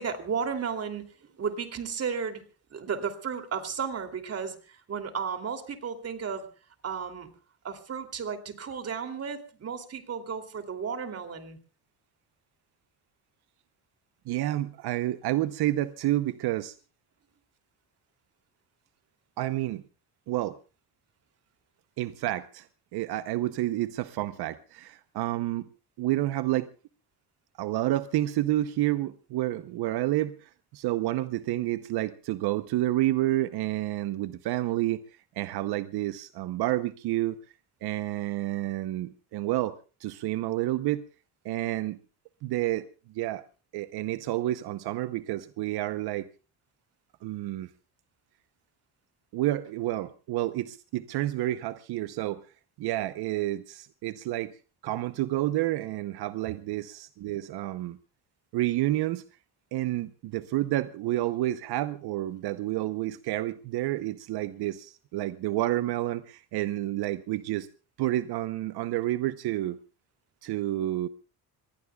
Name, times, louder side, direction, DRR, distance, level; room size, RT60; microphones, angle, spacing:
voice 1, 0.0-2.4 2.7-6.5 6.8-7.3 7.6-11.6 56.4-56.5, right 6 dB, 40° right, 2.9 m, -34 dB
voice 2, 14.3-16.7 19.4-19.8 20.3-20.6 22.0-22.7 22.9-25.7 26.0-26.7 27.6-35.0 35.4-37.4 37.8-41.0 41.4-42.0 42.4-42.9 43.1-43.4 43.7-46.3 47.2-47.7 49.3-52.4 52.8-54.5 54.8-58.0 58.5-59.2 59.7-67.7 68.0-69.8 70.4-71.1, right 15 dB, 85° right, 0.9 m, -29 dB
25.5 x 20.5 x 2.3 m
cardioid pair, 135°, 38 cm